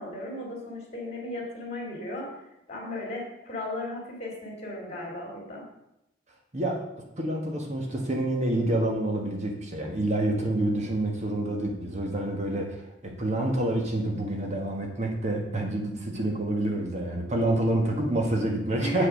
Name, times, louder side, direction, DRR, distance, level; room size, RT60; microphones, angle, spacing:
voice 1, 0.0-2.3 2.7-5.6 18.8-19.1, left 1 dB, 35° left, -1 dB, 3.2 m, -35 dB
voice 2, 7.2-19.1, right 1 dB, 40° right, 2 dB, 1.3 m, -28 dB
8.3 x 5.7 x 6.4 m, 0.86 s
head